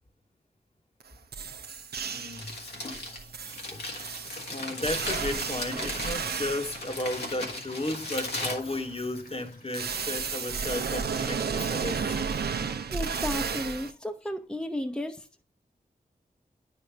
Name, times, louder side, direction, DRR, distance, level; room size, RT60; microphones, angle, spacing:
sound 1, 1.0-1.1 1.3-2.5 2.9-6.9 9.7-13.9, right 5 dB, 80° right, 0.6 m, -33 dB
Crumpling crinkling, 2.1-9.4, left 1 dB, 85° left, 1.5 m, -37 dB
voice 1, 2.1-2.5 2.8-3.9 4.5-12.2, left 1 dB, 35° left, 1.1 m, -34 dB
sound 2, 5.0-11.8 12.3-12.4 13.2-13.3 13.8-13.9 14.4-14.6, left 1 dB, 70° left, 2.0 m, -53 dB
voice 2, 12.9-15.3, left 1 dB, 5° left, 0.7 m, -33 dB
9.1 x 5.2 x 3.3 m
cardioid pair, 40°, 16 cm